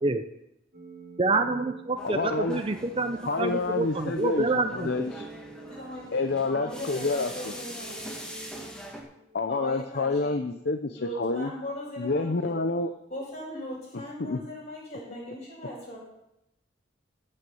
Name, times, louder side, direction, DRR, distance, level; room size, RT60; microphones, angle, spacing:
sound 1, 0.7-9.7, right 3 dB, 55° right, 2.6 m, -47 dB
voice 1, 1.2-4.9, right 3 dB, 30° right, 7 dB, 0.6 m, -27 dB
voice 2, 2.0-2.6 3.3-4.5 4.7-5.3 6.1-7.3 9.3-11.5 12.0-12.9 14.2-14.4, left 3 dB, 60° left, 7 dB, 0.7 m, -28 dB
sound 2, 2.0-9.0, equal, 5° left, 1.7 m, -43 dB
voice 3, 5.6-8.2 9.5-10.4 11.0-12.5 13.1-16.0, equal, 35° left, -5 dB, 6.2 m, -39 dB
14.5 x 6.6 x 7.0 m, 0.86 s
head